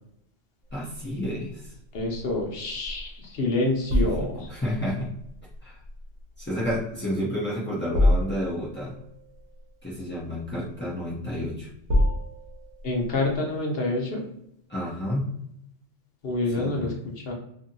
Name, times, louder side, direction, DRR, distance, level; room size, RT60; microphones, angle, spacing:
voice 1, 0.7-1.7 4.2-5.1 5.6-5.7 6.4-9.0 9.8-11.7 14.7-15.3 16.6-16.9, equal, 20° left, -8 dB, 0.3 m, -30 dB
sound 1, 0.7-13.4, left 1 dB, 65° right, 1.0 m, -30 dB
voice 2, 1.9-4.5 12.8-14.3 16.2-17.3, left 2 dB, 55° left, 0 dB, 0.9 m, -27 dB
2.7 x 2.7 x 2.6 m, 0.76 s
omnidirectional pair, 1.3 m